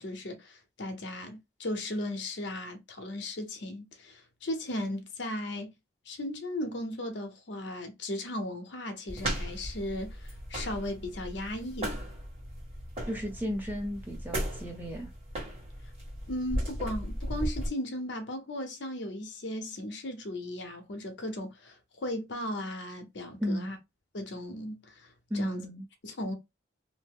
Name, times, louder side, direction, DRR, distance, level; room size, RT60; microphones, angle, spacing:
voice 1, 0.0-5.7 6.1-12.0 16.3-23.8 24.1-25.7 26.0-26.3, left 1 dB, 65° left, 0.7 m, -36 dB
sound 1, 9.1-17.7, equal, 30° right, 1.5 m, -36 dB
voice 2, 13.1-15.1 23.4-23.7 25.3-25.9, equal, 10° right, 0.6 m, -34 dB
2.7 x 2.0 x 3.5 m
head